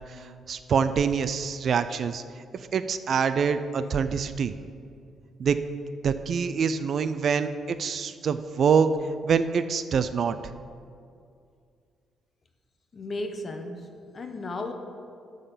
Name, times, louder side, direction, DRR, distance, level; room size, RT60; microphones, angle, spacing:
voice 1, 0.0-2.2 2.5-4.5 5.4-5.6 6.0-8.9 9.2-10.4, right 6 dB, 55° right, 11 dB, 0.4 m, -25 dB
voice 2, 12.9-14.7, left 2 dB, 40° left, 5 dB, 0.9 m, -35 dB
10.5 x 3.9 x 7.1 m, 2.3 s
cardioid pair, 90°, 0 cm